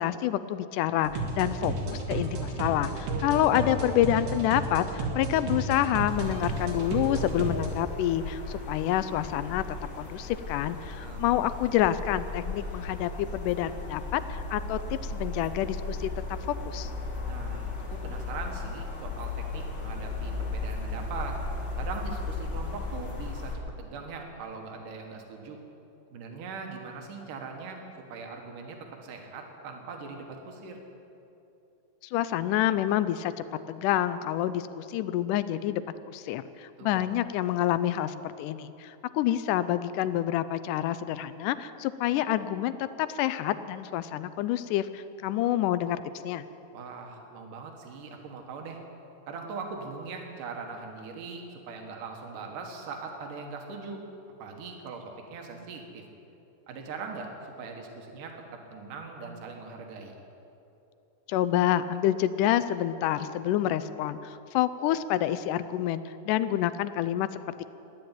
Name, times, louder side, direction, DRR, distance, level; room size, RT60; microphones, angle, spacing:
voice 1, 0.0-9.6 10.0-14.8 15.1-16.1 16.7-16.9 32.1-33.3 33.7-42.7 43.0-46.5 61.3-67.6, left 12 dB, 80° left, 13 dB, 1.9 m, -28 dB
sound 1, 1.0-7.7, right 2 dB, 90° right, 3.7 m, -32 dB
sound 2, 6.1-23.6, left 3 dB, 35° left, 2.2 m, -36 dB
voice 2, 10.9-11.2 17.3-21.4 21.8-23.5 23.8-25.6 26.1-30.8 36.8-37.0 46.7-48.8 49.3-54.1 54.4-56.0 56.7-60.1, right 4 dB, 70° right, 2 dB, 3.1 m, -41 dB
14.0 x 10.5 x 9.0 m, 2.8 s
omnidirectional pair, 3.9 m